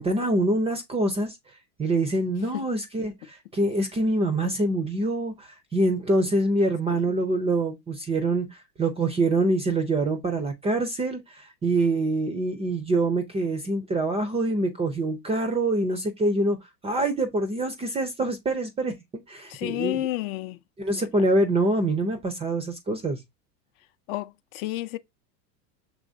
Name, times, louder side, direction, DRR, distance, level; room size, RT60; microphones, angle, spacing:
voice 1, 0.0-1.4 1.8-16.6 16.8-19.0 19.3-20.1 20.8-23.2, right 2 dB, 15° right, 0.4 m, -25 dB
voice 2, 19.5-20.6 24.1-25.0, left 15 dB, 55° left, 0.5 m, -30 dB
6.1 x 3.1 x 2.6 m
hypercardioid pair, 110°, 49 cm